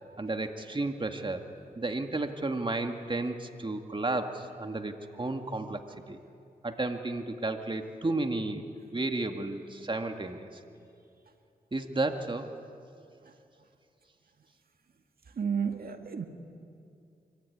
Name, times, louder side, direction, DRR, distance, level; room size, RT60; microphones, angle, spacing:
voice 1, 0.2-1.5 1.8-5.8 6.1-6.2 6.6-8.7 8.9-10.6 11.7-12.5, right 2 dB, 30° right, 5 dB, 2.1 m, -32 dB
voice 2, 15.4-16.3, right 6 dB, 75° right, 5 dB, 1.9 m, -31 dB
25.0 x 24.0 x 9.7 m, 2.5 s
cardioid pair, 55°, 16 cm